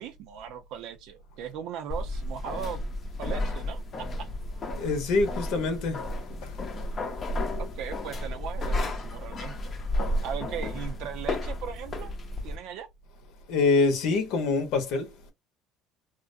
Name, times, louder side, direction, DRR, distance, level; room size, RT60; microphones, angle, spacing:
voice 1, 0.0-2.8 3.2-4.3 7.6-9.7 10.2-12.1 12.4-12.9, right 9 dB, 70° right, 0.5 m, -38 dB
sound 1, 1.9-12.6, left 1 dB, 40° left, 0.6 m, -32 dB
voice 2, 4.8-6.1 6.4-6.6 13.5-15.1, left 3 dB, 75° left, 0.8 m, -25 dB
2.5 x 2.1 x 2.5 m
supercardioid pair, 100°, 0 cm